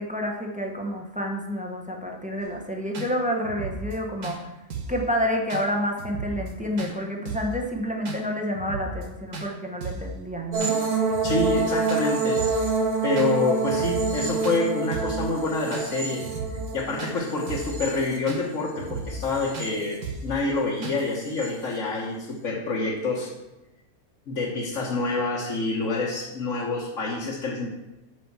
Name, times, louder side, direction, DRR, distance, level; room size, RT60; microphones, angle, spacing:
voice 1, 0.0-4.5 4.9-10.8, equal, 5° right, 1 dB, 1.0 m, -29 dB
sound 1, 2.4-2.5 2.9-3.1 3.4-4.0 4.2-4.4 4.7-5.0 5.5-5.6 6.0-6.5 6.8-6.9 7.2-7.6 8.0-8.2 8.5-9.1 9.3-9.5 9.8-10.1 10.6-10.8 11.1-11.6 11.9-12.0 12.4-12.7 13.2-13.3 13.6-14.2 14.4-14.6 14.9-15.2 15.7-15.9 16.2-16.7 17.0-17.1 17.5-17.8 18.3-18.4 18.7-19.3 19.5-19.7 20.0-20.3 20.8-21.0, right 3 dB, 90° right, 1.9 m, -35 dB
sound 2, 10.5-18.7 19.1-19.9 21.2-21.5, right 4 dB, 40° right, 1.5 m, -27 dB
voice 2, 11.2-12.4 13.0-16.2 16.7-23.3 24.3-27.7, left 3 dB, 60° left, -4 dB, 1.5 m, -27 dB
7.9 x 5.1 x 7.2 m, 0.97 s
omnidirectional pair, 1.5 m